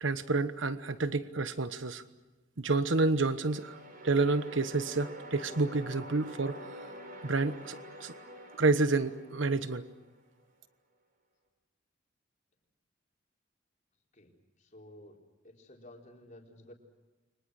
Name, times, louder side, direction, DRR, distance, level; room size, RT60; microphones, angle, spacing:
voice 1, 0.0-2.0 2.6-3.8 4.0-6.6 7.2-8.1 8.6-9.8, right 3 dB, 90° right, 11 dB, 1.2 m, -29 dB
sound 1, 3.1-10.2, equal, 50° right, 5.8 m, -47 dB
voice 2, 14.1-15.2 15.4-16.7, left 1 dB, 40° left, 1 dB, 4.3 m, -53 dB
30.0 x 25.5 x 6.5 m, 1.1 s
head